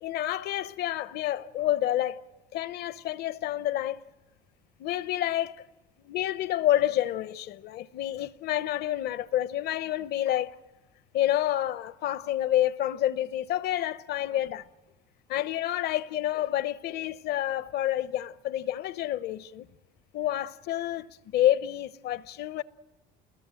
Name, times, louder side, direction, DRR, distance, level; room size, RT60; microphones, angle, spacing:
voice 1, 0.0-2.2 2.5-4.0 4.8-5.6 6.0-10.6 11.1-14.7 15.3-19.7 20.1-21.1 21.3-22.6, left 13 dB, 60° left, 0.8 m, -28 dB
29.0 x 21.0 x 7.6 m
supercardioid pair, 100°, 18 cm